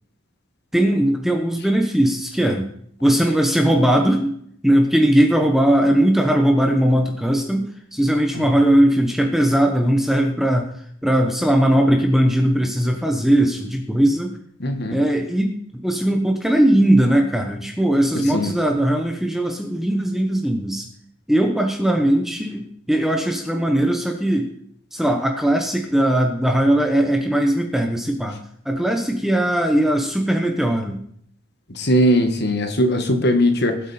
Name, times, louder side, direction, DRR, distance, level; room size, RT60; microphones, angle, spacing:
voice 1, 0.7-2.7 3.0-4.3 4.6-10.7 11.0-14.3 14.9-15.6 15.8-20.9 21.3-24.5 24.9-28.4 28.7-31.0, right 1 dB, ahead, 3 dB, 1.0 m, -19 dB
voice 2, 14.6-15.0 18.1-18.6 31.8-33.8, equal, 50° left, 6 dB, 1.6 m, -19 dB
20.0 x 8.1 x 4.3 m, 0.67 s
head